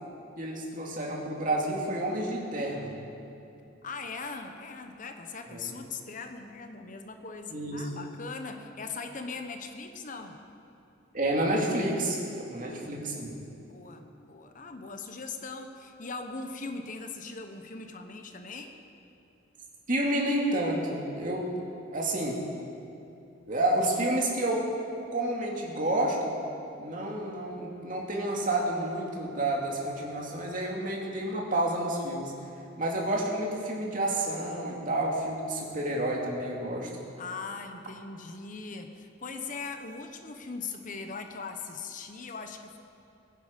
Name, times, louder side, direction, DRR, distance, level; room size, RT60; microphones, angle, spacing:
voice 1, 0.4-2.9 5.5-5.7 7.5-7.8 11.1-12.2 12.5-13.3 19.9-21.5 21.9-22.4 23.5-24.6 25.1-26.3 26.8-32.3 32.8-36.9, right 1 dB, 45° right, -2 dB, 2.4 m, -29 dB
voice 2, 3.8-10.4 12.5-13.0 13.6-18.8 37.2-42.8, left 4 dB, 45° left, 6 dB, 0.9 m, -40 dB
22.5 x 9.5 x 5.2 m, 2.8 s
head